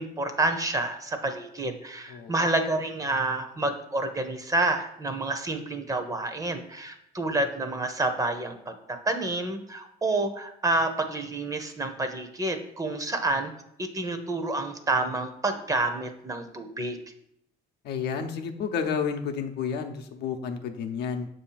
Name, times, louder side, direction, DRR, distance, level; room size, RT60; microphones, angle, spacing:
voice 1, 0.0-13.5 13.8-17.0, right 2 dB, 20° right, 7 dB, 0.7 m, -29 dB
voice 2, 2.1-2.5 17.8-21.3, left 6 dB, 75° left, 5 dB, 0.7 m, -31 dB
6.8 x 2.7 x 5.6 m, 0.77 s
cardioid pair, 110°, 17 cm